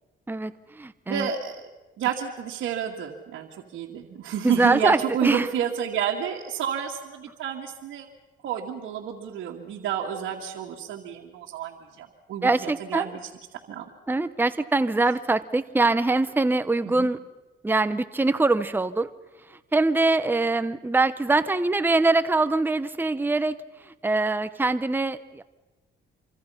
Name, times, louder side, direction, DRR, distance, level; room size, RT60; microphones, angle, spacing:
voice 1, 0.3-1.3 4.4-5.5 12.4-13.1 14.1-17.2 17.6-19.1 19.5-25.4, right 3 dB, 10° right, 12 dB, 0.9 m, -23 dB
voice 2, 1.1-1.6 2.0-8.1 8.4-13.3 13.7-13.9 16.8-17.1, right 9 dB, 75° right, -2 dB, 2.2 m, -30 dB
27.0 x 24.5 x 5.8 m, 1.1 s
cardioid pair, 90°, 20 cm